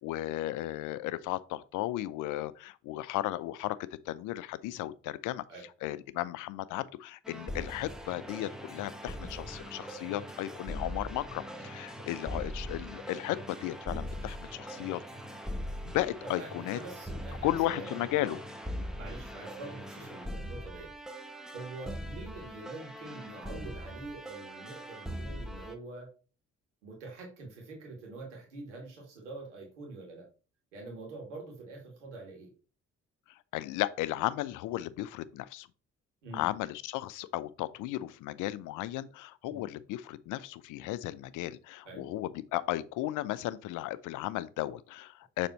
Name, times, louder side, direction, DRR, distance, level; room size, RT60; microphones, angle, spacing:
voice 1, 0.0-3.8 4.1-5.4 5.8-15.0 15.8-16.8 17.4-18.4 18.8-18.9 33.3-35.7 36.3-45.5, left 15 dB, 60° left, 0.5 m, -35 dB
sound 1, 7.2-25.7, equal, ahead, 1.0 m, -41 dB
voice 2, 16.4-18.0 18.2-18.4 18.9-20.9 21.5-26.1 26.8-30.3 30.7-32.5 36.2-36.5 39.5-39.6 41.8-42.0, right 3 dB, 85° right, 2.0 m, -45 dB
6.7 x 3.5 x 4.0 m
hypercardioid pair, 45°, 35 cm